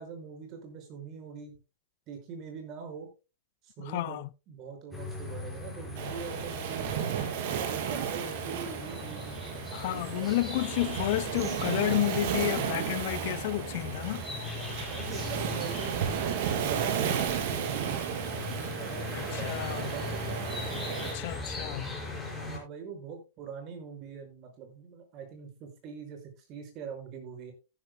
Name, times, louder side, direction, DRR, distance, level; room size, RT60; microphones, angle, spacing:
voice 1, 0.0-1.6 2.1-3.1 3.6-4.2 4.5-7.1 7.6-9.4 9.7-10.6 14.9-20.8 21.8-21.9 22.4-27.5, right 6 dB, 40° right, 5.5 m, -43 dB
voice 2, 3.9-4.3 9.7-14.3 19.1-20.0 21.0-22.0, left 17 dB, 60° left, 0.5 m, -31 dB
sound 1, 4.9-22.6, left 3 dB, 5° left, 5.2 m, -40 dB
Waves surf, 6.0-21.1, right 8 dB, 60° right, 3.0 m, -34 dB
15.5 x 11.0 x 2.2 m
supercardioid pair, 140°, 0 cm